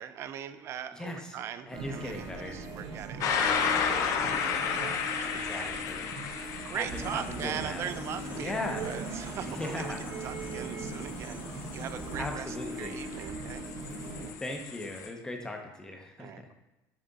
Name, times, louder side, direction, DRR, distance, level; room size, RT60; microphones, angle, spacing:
voice 1, 0.0-5.8 6.1-9.9 10.2-13.6 16.2-16.5, right 9 dB, 40° right, 12 dB, 0.4 m, -40 dB
voice 2, 0.9-1.4 1.7-2.6 5.4-6.1 6.7-7.9 8.4-8.9 9.4-10.0 12.2-13.0 14.4-16.5, left 2 dB, 10° left, 2 dB, 0.7 m, -38 dB
sound 1, 1.7-14.3, right 3 dB, 55° right, 0.8 m, -40 dB
sound 2, 3.2-15.1, left 6 dB, 50° left, 0.6 m, -34 dB
sound 3, 6.9-12.2, left 2 dB, 30° left, 1.1 m, -45 dB
7.4 x 3.5 x 4.0 m, 1.0 s
cardioid pair, 155°, 7 cm